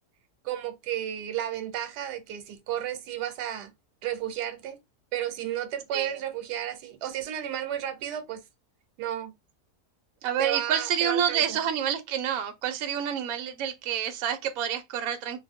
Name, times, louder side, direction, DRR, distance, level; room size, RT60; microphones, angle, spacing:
voice 1, 0.4-3.7 4.0-4.8 5.1-8.4 9.0-9.3 10.4-11.6, right 11 dB, 90° right, 1.2 m, -33 dB
voice 2, 10.2-15.4, right 9 dB, 65° right, 1.0 m, -28 dB
2.6 x 2.4 x 3.4 m
omnidirectional pair, 1.7 m